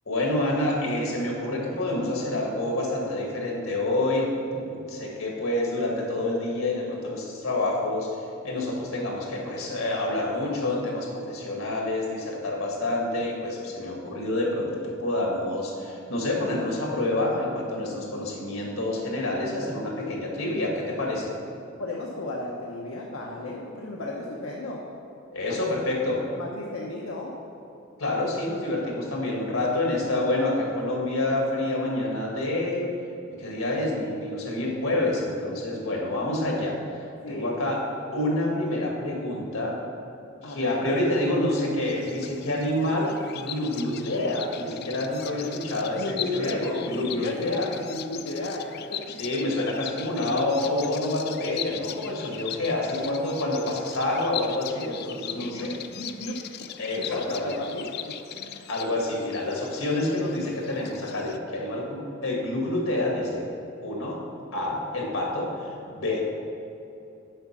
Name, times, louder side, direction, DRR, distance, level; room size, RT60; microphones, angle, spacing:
voice 1, 0.1-8.1 8.4-21.3 25.3-26.2 28.0-32.8 33.4-36.7 37.3-37.8 38.1-39.8 40.4-47.7 49.2-55.7 56.8-57.0 57.3-57.5 58.7-63.4 63.8-64.2 64.5-66.2, left 1 dB, 90° left, -2 dB, 1.8 m, -28 dB
voice 2, 21.8-24.9 25.5-25.7 26.4-27.4 33.4-33.5 37.2-37.7 40.4-40.9 41.2-41.3 45.9-49.1 49.4-49.6 52.9-53.8 55.3-56.7 57.0-58.7, left 2 dB, 75° left, -3 dB, 0.8 m, -34 dB
Bird vocalization bird call bird song, 41.8-61.4, left 10 dB, 50° left, 0.3 m, -39 dB
7.8 x 5.1 x 5.9 m, 2.8 s
head